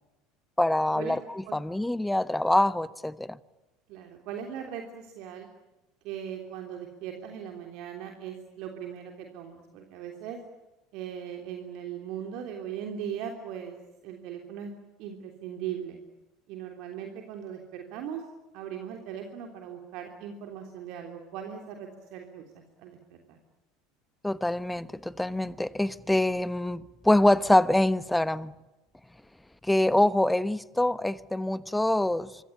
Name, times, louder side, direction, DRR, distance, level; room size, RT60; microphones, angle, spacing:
voice 1, 0.6-3.4 24.2-28.5 29.6-32.3, left 1 dB, 5° left, 1.1 m, -25 dB
voice 2, 3.9-5.5 6.0-10.4 10.9-13.8 14.0-14.7 15.0-16.0 16.5-18.2 18.5-23.4, right 9 dB, 55° right, 3.3 m, -39 dB
26.0 x 24.5 x 8.5 m
figure-of-eight pair, 70°, 0 cm